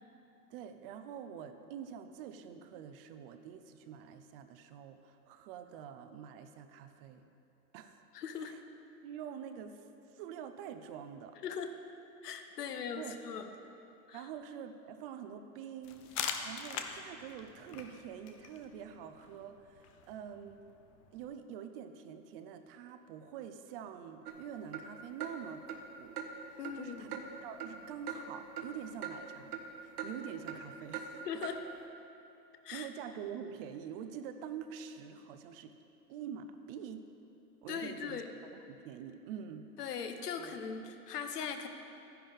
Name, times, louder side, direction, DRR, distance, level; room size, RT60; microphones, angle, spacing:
voice 1, 0.5-7.3 7.7-8.0 8.4-8.6 9.0-11.4 12.6-13.2 14.1-20.6 21.1-26.2 26.5-31.2 32.7-35.8 36.1-37.0 37.6-39.7 40.4-40.5, right 8 dB, 40° right, 9 dB, 0.6 m, -46 dB
voice 2, 8.1-8.5 11.4-11.8 12.2-13.5 14.1-14.2 26.6-27.1 31.2-31.6 32.6-32.9 37.7-38.3 39.8-41.7, left 7 dB, 75° left, 7 dB, 1.1 m, -40 dB
sound 1, 15.8-21.4, left 7 dB, 25° left, 0.3 m, -44 dB
sound 2, 24.2-24.4 24.7-24.8 25.2-25.3 25.7-25.8 26.2-26.3 26.6-26.8 27.1-27.3 27.6-27.8 28.1-28.2 28.6-28.7 29.0-29.1 29.5-29.6 30.0-30.1 30.5-30.6 30.9-31.1 31.4-31.5, right 8 dB, 70° right, 1.3 m, -40 dB
12.5 x 10.0 x 3.6 m, 2.8 s
hypercardioid pair, 120°, 47 cm